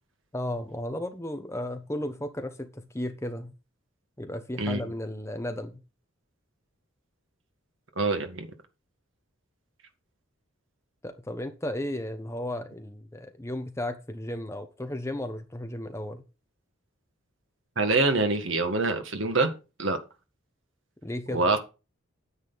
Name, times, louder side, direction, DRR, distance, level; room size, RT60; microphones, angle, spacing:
voice 1, 0.3-3.5 4.2-5.8 11.0-16.2 21.0-21.5, left 1 dB, 15° left, 1.0 m, -34 dB
voice 2, 8.0-8.5 17.8-19.5 19.8-20.0 21.3-21.6, right 3 dB, 65° right, 1.7 m, -25 dB
9.7 x 9.0 x 4.0 m
head